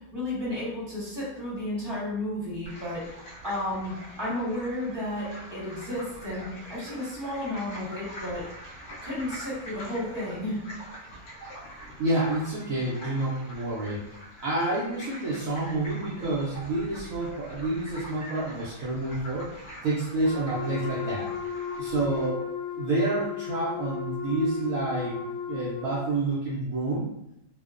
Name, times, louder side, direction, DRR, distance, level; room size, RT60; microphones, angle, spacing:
voice 1, 0.1-8.4 9.0-10.6, left 1 dB, 20° right, -8 dB, 0.8 m, -33 dB
sound 1, 2.7-22.3, equal, 50° left, 0.9 m, -44 dB
voice 2, 12.0-14.0 14.4-19.5 19.8-21.3 21.8-22.4 22.8-27.1, right 2 dB, 70° right, -7 dB, 0.8 m, -28 dB
Wind instrument woodwind instrument, 20.2-26.0, left 7 dB, 75° left, 1.2 m, -35 dB
2.9 x 2.0 x 2.4 m, 0.81 s
omnidirectional pair, 1.9 m